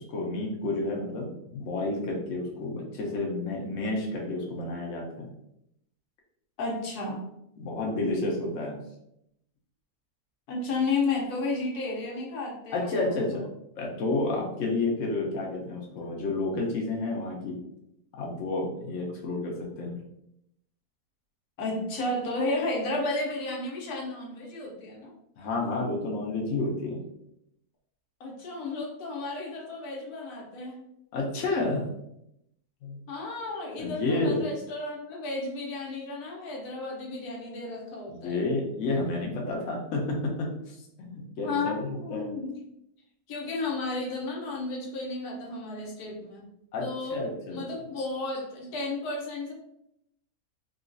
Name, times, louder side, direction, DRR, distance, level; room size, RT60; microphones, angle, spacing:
voice 1, 0.0-5.3 7.6-8.8 12.7-13.4 13.8-17.6 18.1-20.0 25.4-27.0 31.1-31.9 32.8-33.0 33.8-34.4 38.1-42.3 46.7-47.6, left 2 dB, 60° left, -1 dB, 1.0 m, -30 dB
voice 2, 6.6-7.2 10.5-13.5 21.6-25.1 28.2-30.8 33.1-38.4 41.4-42.5 43.3-46.4 46.8-47.2 47.5-49.5, left 3 dB, 80° left, -2 dB, 1.3 m, -33 dB
3.8 x 2.3 x 2.5 m, 0.79 s
omnidirectional pair, 1.6 m